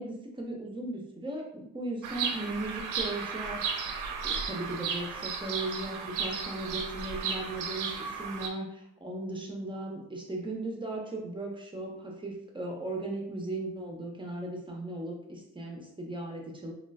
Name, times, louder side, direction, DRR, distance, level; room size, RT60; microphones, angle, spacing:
voice 1, 0.0-16.7, right 2 dB, 15° right, 0 dB, 0.7 m, -37 dB
Bird vocalization bird call bird song, 2.0-8.5, right 6 dB, 90° right, 0.5 m, -34 dB
3.7 x 2.3 x 2.2 m, 0.79 s
cardioid pair, 90°, 30 cm